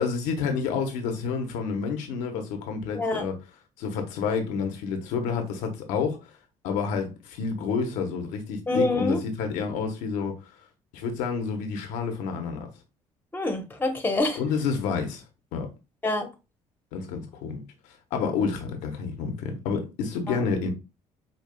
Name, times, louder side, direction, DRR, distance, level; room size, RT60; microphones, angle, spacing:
voice 1, 0.0-3.3 3.8-6.3 6.6-10.3 10.9-12.7 14.4-15.2 15.5-15.7 16.9-17.6 18.1-20.7, left 5 dB, 90° left, 0.8 m, -29 dB
voice 2, 2.9-3.3 8.7-9.2 13.3-14.4 16.0-16.3 20.3-20.4, left 2 dB, 15° left, 0.9 m, -26 dB
5.1 x 2.3 x 2.2 m
supercardioid pair, 85°, 12 cm